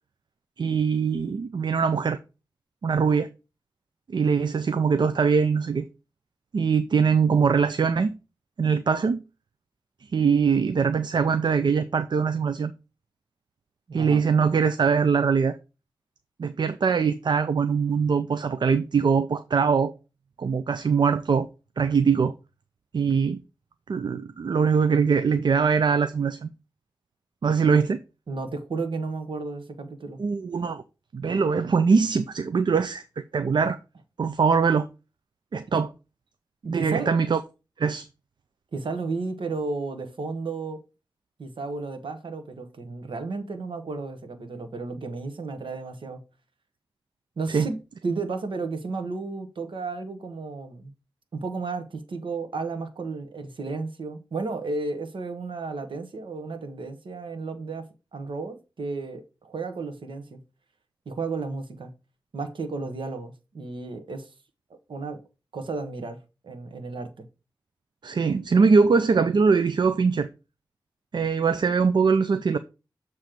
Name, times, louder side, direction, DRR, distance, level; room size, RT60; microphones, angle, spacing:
voice 1, 0.6-2.2 2.8-3.3 4.1-5.9 6.5-8.1 8.6-9.2 10.1-12.7 13.9-15.6 16.4-19.9 20.4-21.5 21.8-22.3 22.9-23.4 23.9-26.5 27.4-28.0 30.2-30.8 31.1-33.8 34.2-34.9 35.5-35.9 36.7-37.4 37.8-38.0 47.5-47.7 68.0-70.3 71.1-72.6, right 5 dB, 65° right, 0.5 m, -22 dB
voice 2, 13.9-14.2 28.3-30.2 35.7-35.8 36.6-37.1 38.7-40.8 41.4-46.2 47.4-47.8 48.0-50.9 51.3-57.9 58.1-60.4 61.0-61.9 62.3-64.3 64.7-65.2 65.5-67.1, right 3 dB, 90° right, 1.1 m, -33 dB
7.6 x 3.1 x 5.0 m
wide cardioid pair, 90°, 8 cm